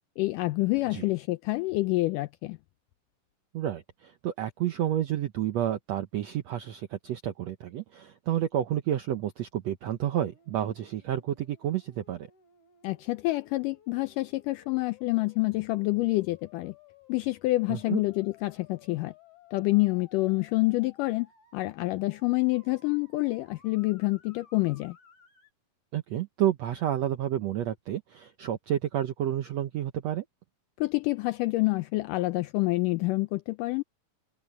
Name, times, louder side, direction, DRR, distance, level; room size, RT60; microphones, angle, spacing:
voice 1, 0.2-2.6 12.8-16.7 17.1-19.1 19.5-21.3 21.5-25.0 30.8-33.8, left 21 dB, 85° left, 1.9 m, -27 dB
voice 2, 3.5-12.3 17.7-18.0 25.9-30.2, right 11 dB, 75° right, 1.6 m, -30 dB
sound 1, 10.0-25.5, left 8 dB, 55° left, 4.8 m, -58 dB
omnidirectional pair, 4.2 m